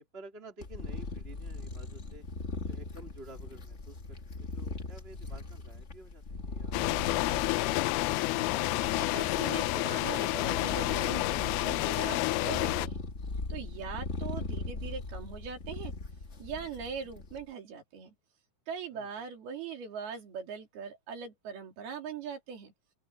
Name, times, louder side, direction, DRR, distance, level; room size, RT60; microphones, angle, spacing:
voice 1, 0.0-2.2 2.6-6.8 7.2-8.5 18.9-19.1, right 2 dB, 15° right, 3.4 m, -52 dB
sound 1, 0.6-17.4, left 3 dB, 65° left, 0.6 m, -40 dB
sound 2, 6.7-12.9, left 20 dB, 80° left, 2.5 m, -29 dB
voice 2, 8.9-13.0 13.5-15.9 16.4-18.1 18.7-22.7, right 6 dB, 75° right, 5.2 m, -41 dB
open air
omnidirectional pair, 4.5 m